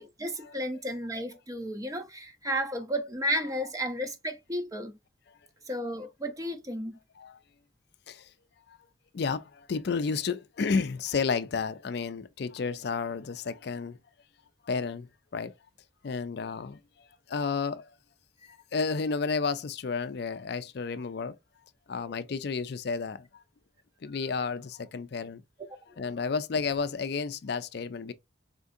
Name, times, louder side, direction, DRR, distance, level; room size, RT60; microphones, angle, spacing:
voice 1, 0.0-4.9 5.7-7.0 18.4-18.5 25.9-26.0, equal, 15° right, 0.6 m, -33 dB
voice 2, 3.4-3.9 7.2-7.4 8.1-8.2 9.1-9.4 9.7-14.0 14.7-15.1 15.3-15.5 16.0-16.8 17.3-17.9 18.7-21.3 21.9-23.2 24.0-25.4 26.0-28.1, left 5 dB, 55° left, 0.4 m, -31 dB
4.3 x 3.6 x 2.6 m
head